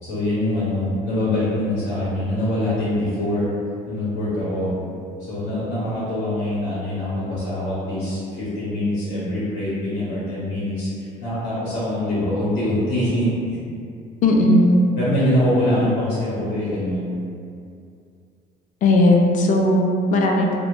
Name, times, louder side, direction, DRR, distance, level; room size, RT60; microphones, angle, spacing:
voice 1, 0.0-3.5 3.9-4.7 5.3-13.6 15.0-17.2, left 1 dB, 90° left, -10 dB, 0.8 m, -24 dB
voice 2, 14.2-14.8 18.8-20.6, left 1 dB, 50° left, 0 dB, 0.4 m, -16 dB
2.1 x 2.1 x 3.0 m, 2.4 s
cardioid pair, 110°, 17 cm